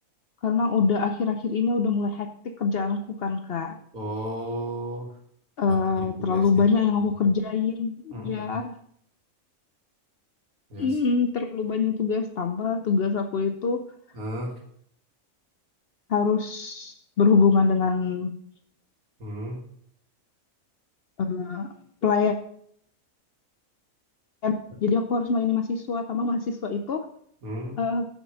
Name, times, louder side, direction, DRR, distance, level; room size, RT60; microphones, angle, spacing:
voice 1, 0.4-2.3 2.6-3.7 5.6-8.7 10.8-13.9 16.1-18.3 21.2-21.7 22.0-22.4 24.4-24.5 24.8-27.1 27.8-28.1, left 5 dB, 60° left, 6 dB, 0.7 m, -24 dB
voice 2, 3.9-5.1 5.7-5.8 6.2-6.6 8.1-8.5 10.7-10.9 14.1-14.5 19.2-19.6 27.4-27.8, right 1 dB, 85° right, 0 dB, 2.3 m, -34 dB
6.5 x 5.3 x 6.3 m, 0.65 s
omnidirectional pair, 1.5 m